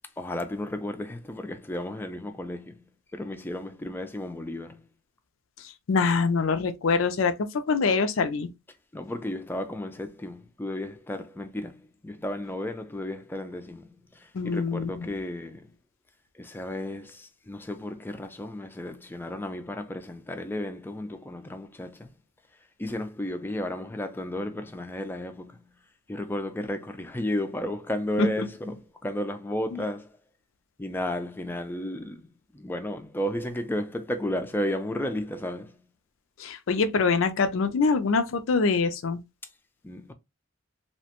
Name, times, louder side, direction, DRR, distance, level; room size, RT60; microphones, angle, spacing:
voice 1, 0.2-2.8 3.1-4.9 8.9-15.7 16.3-22.1 22.8-25.7 26.1-30.2 30.8-35.8 39.8-40.1, left 1 dB, 10° left, 0.4 m, -33 dB
voice 2, 5.6-8.5 14.3-15.1 28.2-28.3 29.7-29.8 36.4-39.2, left 4 dB, 85° left, 0.4 m, -24 dB
2.8 x 2.1 x 2.8 m
head